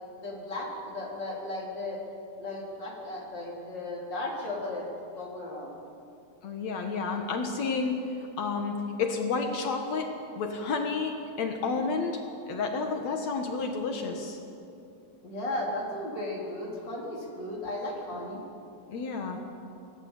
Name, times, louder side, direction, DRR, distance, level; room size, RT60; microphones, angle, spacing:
voice 1, 0.2-2.0 2.4-4.9 5.2-5.7 15.2-18.4, left 1 dB, 35° left, -3 dB, 4.4 m, -35 dB
voice 2, 6.4-8.0 8.4-10.1 10.4-12.2 12.5-14.4 18.9-19.4, left 4 dB, 65° left, 4 dB, 2.7 m, -30 dB
24.5 x 17.5 x 8.3 m, 2.7 s
omnidirectional pair, 3.5 m